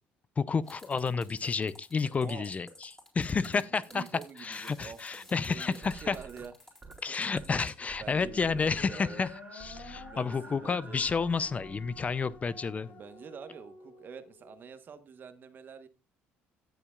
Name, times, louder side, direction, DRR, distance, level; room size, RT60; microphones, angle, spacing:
voice 1, 0.4-4.0 4.4-6.2 7.0-12.9, left 5 dB, 30° left, 0.5 m, -31 dB
sound 1, 0.6-7.7, left 1 dB, 10° left, 3.9 m, -54 dB
voice 2, 3.5-7.0 8.0-9.2 9.9-11.0 12.9-15.9, right 6 dB, 45° right, 1.2 m, -47 dB
sound 2, 5.8-7.0 7.3-7.6 7.9-12.6, right 5 dB, 25° right, 2.2 m, -50 dB
sound 3, 8.1-14.6, left 5 dB, 70° left, 1.7 m, -50 dB
17.0 x 7.1 x 2.4 m
supercardioid pair, 80°, 5 cm